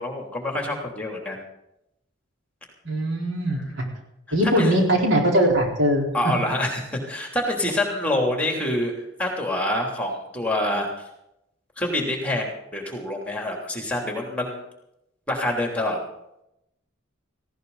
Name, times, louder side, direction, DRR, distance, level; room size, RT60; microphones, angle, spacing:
voice 1, 0.0-1.4 3.5-3.6 4.4-4.8 6.1-8.9 9.2-10.9 11.8-14.6 15.3-16.0, left 1 dB, 5° left, 1 dB, 3.1 m, -26 dB
voice 2, 2.8-3.8 4.3-6.3, equal, 65° right, 0 dB, 4.3 m, -21 dB
18.5 x 16.0 x 4.1 m, 0.83 s
head